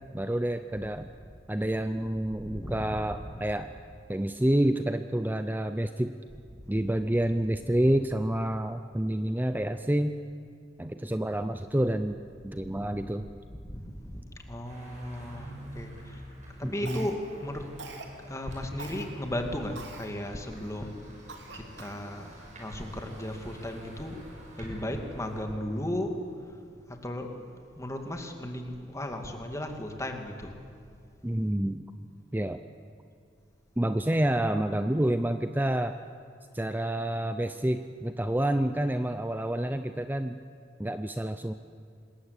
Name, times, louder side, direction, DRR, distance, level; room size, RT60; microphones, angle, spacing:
voice 1, 0.1-1.1 1.5-3.7 4.1-6.1 6.7-10.2 10.8-12.2 12.4-13.3 16.6-17.1 31.2-31.9 32.3-32.6 33.8-36.0 36.5-40.4 40.8-41.5, right 1 dB, 10° right, 9 dB, 0.6 m, -28 dB
voice 2, 2.3-3.4 12.6-12.9 13.6-16.2 16.6-17.7 18.2-21.0 21.5-24.2 24.6-26.2 26.9-27.4 27.8-30.6, left 1 dB, 15° left, 4 dB, 2.4 m, -36 dB
sound 1, 14.6-25.4, right 1 dB, 40° right, 6.3 m, -49 dB
Cough, 16.9-17.4 17.8-18.1 18.8-19.1 19.8-20.1 20.6-20.7 21.3-22.1, right 3 dB, 65° right, 2.8 m, -43 dB
26.5 x 21.0 x 8.4 m, 2.2 s
head